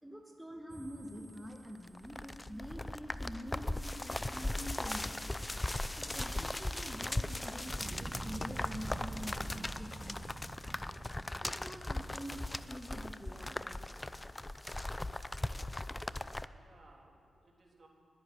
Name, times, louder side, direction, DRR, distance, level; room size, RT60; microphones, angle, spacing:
voice 1, 0.0-5.3 5.9-10.2 11.4-13.8, right 1 dB, 10° right, 1 dB, 1.4 m, -46 dB
sound 1, 0.7-16.5, left 1 dB, 20° left, 0.5 m, -39 dB
Dog, 3.9-5.1 6.0-6.3 8.3-8.5 9.2-12.5 12.8-12.9 13.4-13.5 14.2-14.6 14.9-15.2, left 2 dB, 80° left, 2.7 m, -66 dB
Fire, 7.6-12.8, right 1 dB, 25° right, 1.1 m, -46 dB
voice 2, 16.1-17.9, right 2 dB, 50° right, -1 dB, 3.1 m, -63 dB
20.5 x 8.7 x 6.4 m, 2.4 s
supercardioid pair, 45°, 0 cm